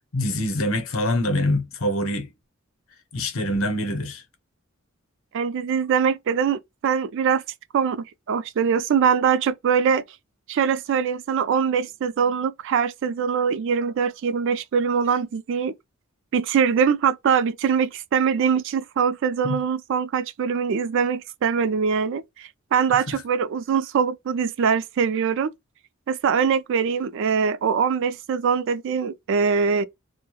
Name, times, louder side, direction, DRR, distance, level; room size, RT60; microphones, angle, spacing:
voice 1, 0.1-2.3 3.1-4.2 19.4-19.6, left 1 dB, 80° left, 0.7 m, -24 dB
voice 2, 5.3-7.4 7.7-10.0 10.5-15.7 16.3-25.5 26.1-29.8, right 6 dB, 65° right, 0.3 m, -23 dB
2.2 x 2.1 x 3.0 m
head